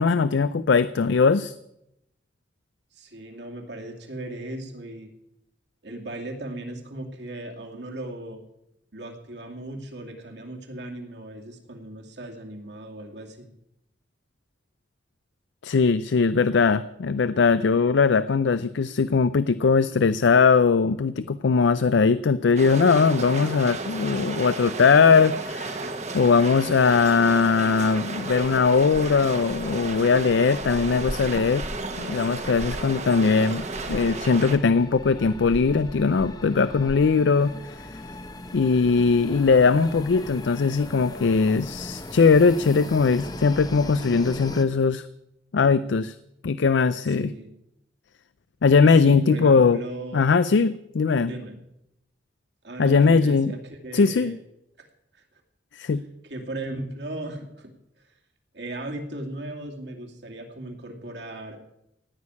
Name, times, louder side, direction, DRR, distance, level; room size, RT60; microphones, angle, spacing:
voice 1, 0.0-1.5 15.6-25.8 26.1-31.7 32.0-37.5 38.5-45.1 45.5-46.1 46.4-47.3 48.6-49.8 50.1-51.3 52.8-53.5 53.9-54.4 55.7-56.0, left 5 dB, 75° left, 14 dB, 0.4 m, -20 dB
voice 2, 2.9-5.1 5.8-8.4 8.9-13.5 47.0-47.5 48.9-50.2 51.1-51.6 52.6-54.4 54.8-54.9 55.1-55.2 56.2-58.1 58.5-61.6, right 1 dB, 65° right, 2 dB, 2.5 m, -37 dB
sound 1, 22.6-34.6, right 3 dB, 35° right, 1.2 m, -33 dB
sound 2, 28.3-44.6, left 1 dB, 20° left, 0.8 m, -39 dB
17.0 x 6.4 x 9.6 m, 0.84 s
head